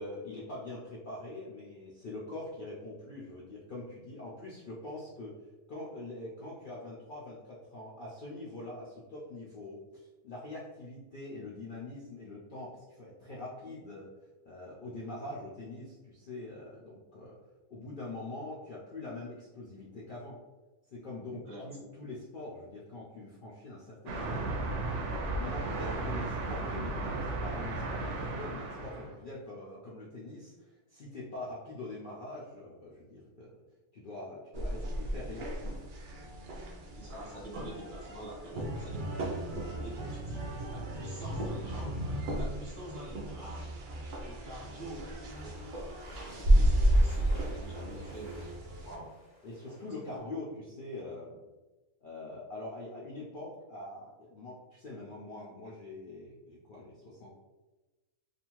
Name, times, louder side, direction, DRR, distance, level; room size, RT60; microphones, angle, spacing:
voice 1, 0.0-5.3 5.7-14.1 14.4-17.4 17.7-20.4 20.9-24.4 24.9-33.6 33.9-35.8 46.3-46.4 49.4-51.4 52.0-57.4, left 2 dB, 80° left, -6 dB, 0.4 m, -44 dB
voice 2, 21.3-21.7 36.9-39.0 39.8-42.0 42.4-43.7 44.2-48.6 48.8-49.1 49.8-50.3, right 1 dB, 30° right, -7 dB, 0.7 m, -46 dB
sound 1, 24.1-29.1, right 2 dB, 65° right, 0.8 m, -35 dB
sound 2, 34.5-49.0, right 1 dB, 85° right, 0.4 m, -32 dB
sound 3, 44.6-50.2, equal, 20° left, 0.5 m, -56 dB
2.6 x 2.4 x 2.9 m, 1.1 s
omnidirectional pair, 1.5 m